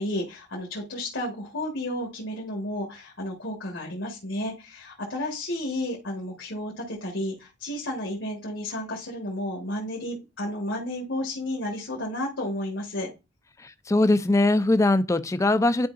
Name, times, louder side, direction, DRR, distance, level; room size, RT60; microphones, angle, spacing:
voice 1, 0.0-13.1, left 1 dB, 75° left, 1.5 m, -32 dB
voice 2, 13.6-15.9, left 2 dB, 15° left, 0.4 m, -21 dB
10.5 x 4.7 x 2.5 m
head